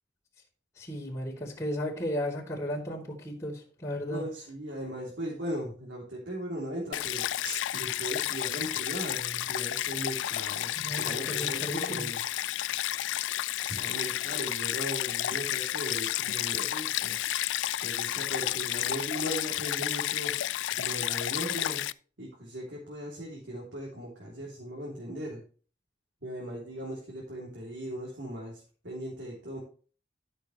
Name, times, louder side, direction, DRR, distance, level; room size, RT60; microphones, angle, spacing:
voice 1, 0.8-4.2 10.8-12.1, equal, 15° left, -12 dB, 3.0 m, -35 dB
voice 2, 4.1-12.2 13.6-17.2 17.8-20.4 20.8-21.8 22.2-25.4 26.2-29.6, right 1 dB, 80° right, -3 dB, 3.2 m, -38 dB
Stream, 6.9-21.9, left 13 dB, 90° left, 0.3 m, -31 dB
13.0 x 6.5 x 3.2 m, 0.40 s
head